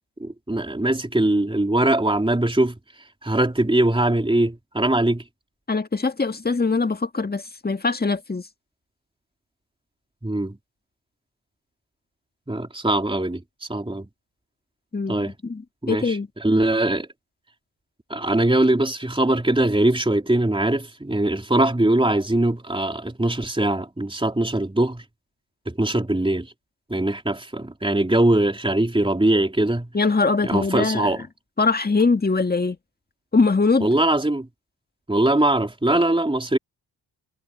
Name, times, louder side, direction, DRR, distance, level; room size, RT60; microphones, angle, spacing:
voice 1, 0.2-5.2 10.2-10.6 12.5-14.1 15.1-15.3 15.8-17.1 18.1-25.0 25.6-26.5 26.9-29.9 30.4-31.2 33.8-34.5 35.1-36.6, right 1 dB, 10° right, 3.4 m, -21 dB
voice 2, 5.7-8.5 14.9-15.6 15.9-16.3 29.9-31.1 31.6-32.8 33.3-33.9, left 4 dB, 20° left, 1.8 m, -22 dB
cardioid pair, 55°, 45 cm